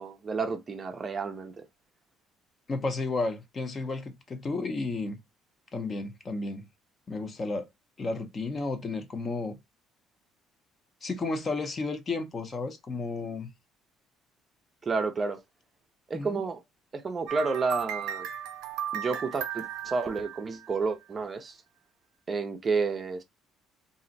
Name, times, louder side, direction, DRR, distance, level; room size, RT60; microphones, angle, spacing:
voice 1, 0.0-1.7 14.8-15.4 16.1-16.6 16.9-18.3 18.9-21.6 22.3-23.2, right 4 dB, 30° right, 0.5 m, -30 dB
voice 2, 2.7-5.2 5.7-6.6 7.1-7.7 8.0-9.6 11.0-13.5 16.1-16.4, left 3 dB, 30° left, 0.6 m, -32 dB
sound 1, 17.3-21.0, right 10 dB, 90° right, 0.4 m, -36 dB
2.5 x 2.0 x 3.9 m
cardioid pair, 130°, 0 cm